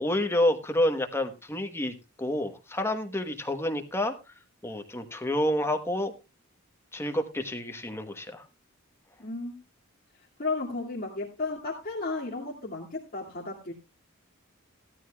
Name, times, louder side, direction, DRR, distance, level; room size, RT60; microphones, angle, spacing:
voice 1, 0.0-4.2 4.6-6.1 6.9-8.4, left 1 dB, 10° left, 6 dB, 1.1 m, -29 dB
voice 2, 9.2-9.6 10.4-13.7, left 3 dB, 45° left, -4 dB, 2.3 m, -33 dB
16.5 x 13.0 x 2.3 m, 0.25 s
head